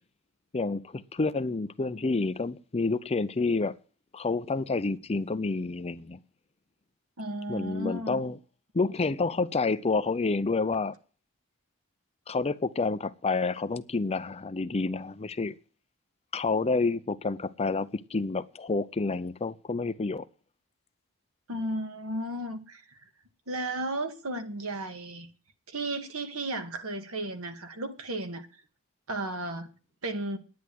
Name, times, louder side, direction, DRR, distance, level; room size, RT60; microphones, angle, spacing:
voice 1, 0.5-3.7 4.1-6.2 7.5-8.4 8.7-11.0 12.3-15.6 16.3-20.2, left 3 dB, 30° left, 0.5 m, -29 dB
voice 2, 7.2-8.2 21.5-23.0 23.5-25.3 25.7-28.5 29.1-29.7 30.0-30.4, right 1 dB, 70° right, 1.8 m, -34 dB
10.5 x 9.6 x 7.8 m
head